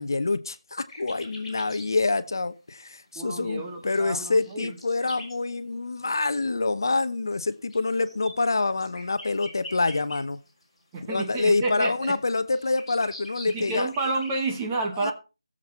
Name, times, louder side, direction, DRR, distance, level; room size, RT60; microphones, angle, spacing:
voice 1, 0.0-10.4 11.0-13.9 15.0-15.1, left 3 dB, 45° left, 0.8 m, -26 dB
sound 1, 0.9-1.9 2.3-2.4 3.7-5.4 6.3-6.5 7.3-10.6 10.9-14.3, left 1 dB, 5° left, 3.9 m, -44 dB
voice 2, 3.1-4.8 10.9-12.1 13.5-15.1, right 3 dB, 10° right, 1.1 m, -30 dB
17.0 x 7.6 x 4.4 m
figure-of-eight pair, 175°, 3 cm